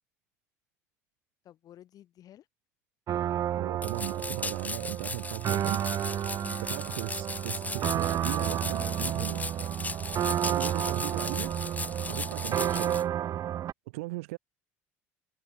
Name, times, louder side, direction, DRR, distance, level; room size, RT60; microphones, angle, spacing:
voice 1, 1.4-2.5 6.4-6.7 8.4-9.5 12.0-12.4, left 12 dB, 55° left, 6.7 m, -50 dB
sound 1, 3.1-13.7, right 11 dB, 50° right, 0.9 m, -31 dB
voice 2, 3.6-5.8 6.7-9.4 10.4-11.5 12.1-13.0 13.9-14.4, right 22 dB, 80° right, 1.2 m, -37 dB
sound 2, 3.8-13.0, left 3 dB, 20° left, 5.2 m, -37 dB
hypercardioid pair, 65°, 8 cm